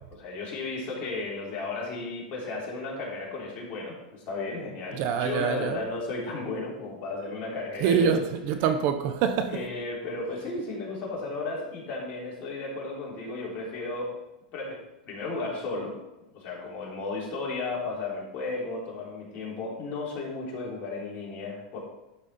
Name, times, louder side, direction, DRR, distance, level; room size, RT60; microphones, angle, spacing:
voice 1, 0.1-8.2 9.5-14.1 14.5-14.8 15.1-15.9 16.3-21.8, left 3 dB, 35° left, 3.5 m, -34 dB
voice 2, 5.0-5.8 7.8-9.6, right 7 dB, 50° right, 0.9 m, -25 dB
11.5 x 5.5 x 4.2 m
supercardioid pair, 135°, 5 cm